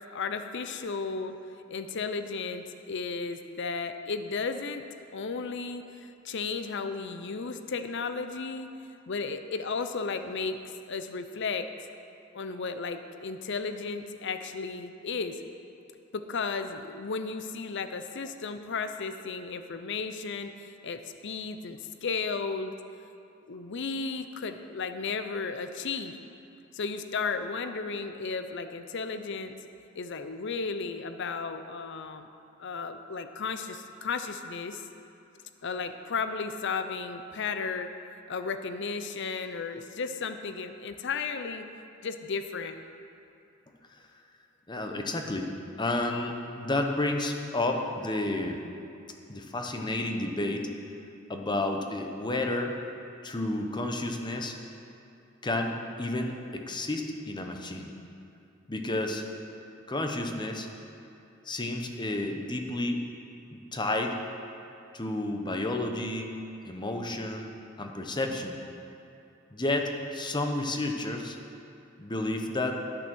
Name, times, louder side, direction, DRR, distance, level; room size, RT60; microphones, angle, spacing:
voice 1, 0.1-1.4 1.7-4.8 5.1-8.7 9.1-10.6 10.9-11.7 12.3-15.4 16.1-22.7 23.5-26.2 26.7-29.6 30.0-32.3 32.6-34.8 35.6-37.9 38.3-41.7 42.0-42.8, left 4 dB, 60° left, 9 dB, 0.6 m, -34 dB
voice 2, 44.7-45.5 45.8-48.6 49.3-50.7 51.3-52.7 53.2-54.6 55.4-57.9 58.7-59.2 59.9-60.7 61.5-63.0 63.5-64.2 64.9-66.3 66.6-67.5 67.8-68.6 69.5-71.4 72.0-72.8, left 2 dB, 20° left, 3 dB, 0.9 m, -31 dB
10.0 x 9.0 x 6.2 m, 2.6 s
head